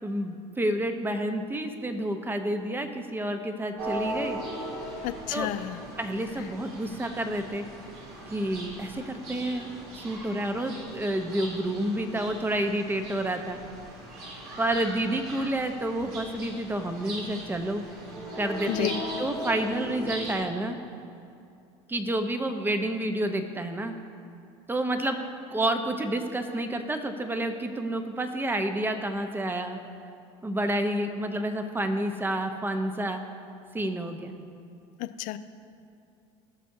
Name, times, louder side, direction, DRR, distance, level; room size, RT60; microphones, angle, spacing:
voice 1, 0.0-4.4 5.3-5.5 6.0-7.6 8.3-13.6 14.6-17.8 18.4-18.9 19.2-20.8 21.9-23.9 24.7-25.2 25.5-29.8 30.4-33.2 33.7-34.4, right 1 dB, 15° right, 6 dB, 1.0 m, -29 dB
sound 1, 3.8-20.3, right 1 dB, 75° right, 2.4 m, -39 dB
voice 2, 5.0-5.8 18.7-19.0 35.0-35.4, left 13 dB, 60° left, 12 dB, 0.5 m, -31 dB
18.5 x 6.3 x 2.8 m, 2.5 s
supercardioid pair, 90°, 15 cm